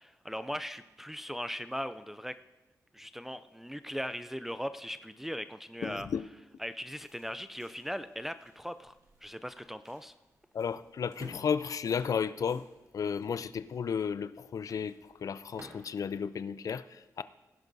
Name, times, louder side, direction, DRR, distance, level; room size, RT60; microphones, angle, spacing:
voice 1, 0.0-2.4 2.9-6.1 6.6-8.9 9.2-10.1, equal, 5° right, 11 dB, 0.3 m, -39 dB
voice 2, 5.8-6.2 10.5-12.6 12.9-17.2, left 6 dB, 65° left, 14 dB, 0.4 m, -33 dB
sound 1, 6.8-16.0, right 1 dB, 60° right, 3.3 m, -57 dB
17.0 x 11.0 x 2.7 m, 1.1 s
wide cardioid pair, 100°, 6 cm